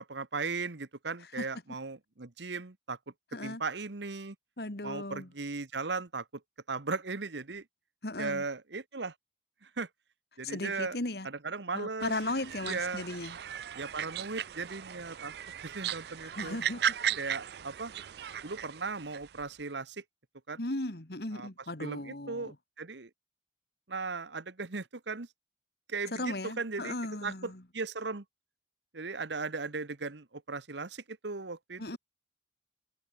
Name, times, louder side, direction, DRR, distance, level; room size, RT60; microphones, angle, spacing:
voice 1, 0.0-3.0 3.4-4.3 4.8-6.2 6.7-7.6 8.2-9.1 9.6-9.9 10.4-11.0 11.2-12.1 12.6-13.0 13.8-15.3 15.6-16.6 17.2-17.9 18.4-20.0 20.5-20.6 21.3-21.5 21.8-23.1 23.9-25.3 25.9-27.0 27.2-28.2 28.9-32.0, right 4 dB, 80° right, 1.3 m, -37 dB
voice 2, 4.6-5.3 8.0-8.4 10.4-11.3 11.7-13.4 16.4-16.8 20.6-22.6 26.1-27.6 31.8-32.0, left 2 dB, 60° left, 2.2 m, -36 dB
sound 1, 12.0-19.5, right 9 dB, 65° right, 0.4 m, -37 dB
head